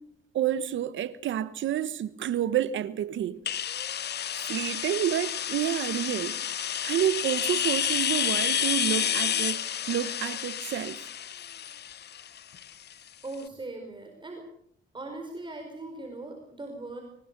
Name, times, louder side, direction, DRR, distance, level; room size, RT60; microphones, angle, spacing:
voice 1, 0.3-3.4 4.4-6.4 6.8-11.0, right 11 dB, 70° right, 1.4 m, -29 dB
sound 1, 3.5-13.1, left 9 dB, 55° left, 1.1 m, -30 dB
voice 2, 13.2-14.4 14.9-17.0, right 2 dB, 25° right, 4.9 m, -39 dB
25.5 x 19.0 x 6.9 m
cardioid pair, 90°, 20 cm